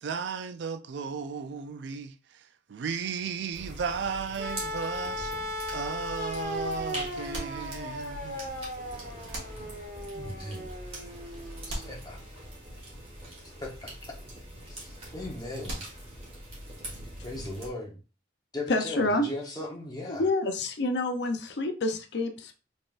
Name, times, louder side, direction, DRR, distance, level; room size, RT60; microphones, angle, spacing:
voice 1, 0.0-5.3 5.7-8.4, right 6 dB, 70° right, 0.4 m, -35 dB
sound 1, 3.5-17.7, right 1 dB, 30° right, 1.6 m, -43 dB
sound 2, 4.4-12.5 13.7-13.8, left 1 dB, 50° right, 1.0 m, -37 dB
sound 3, 7.3-8.3 9.3-10.1 11.7-12.7 15.6-16.5, right 1 dB, 85° right, 1.6 m, -41 dB
voice 2, 10.1-10.7 11.7-12.2 13.4-13.9 14.6-15.8 17.2-18.0 18.5-20.2, left 2 dB, 20° left, 1.0 m, -38 dB
voice 3, 18.7-19.3 20.1-22.5, left 2 dB, 65° left, 0.5 m, -28 dB
4.0 x 3.5 x 2.5 m
head